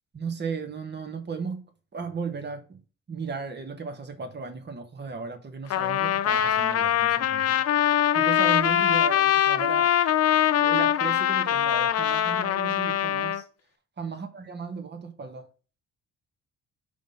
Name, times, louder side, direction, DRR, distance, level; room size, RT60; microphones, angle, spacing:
voice 1, 0.1-1.6 1.9-2.8 3.1-7.6 8.1-9.9 10.6-13.4 14.0-15.5, right 5 dB, 35° right, 1.4 m, -35 dB
Trumpet, 5.7-13.4, left 11 dB, 55° left, 0.6 m, -23 dB
5.0 x 3.6 x 5.5 m
cardioid pair, 90°, 30 cm